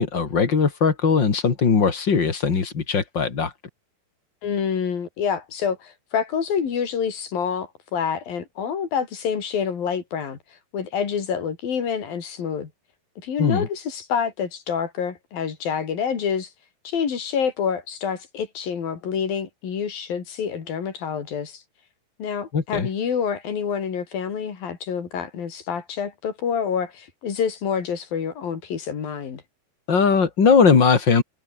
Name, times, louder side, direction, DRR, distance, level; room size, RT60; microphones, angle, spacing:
voice 1, 0.0-3.5 13.4-13.7 22.5-22.9 29.9-31.2, left 5 dB, 30° left, 2.7 m, -19 dB
voice 2, 4.4-10.4 10.7-12.7 13.2-16.5 16.8-21.6 22.2-29.4, left 7 dB, 60° left, 5.0 m, -27 dB
omnidirectional pair, 4.9 m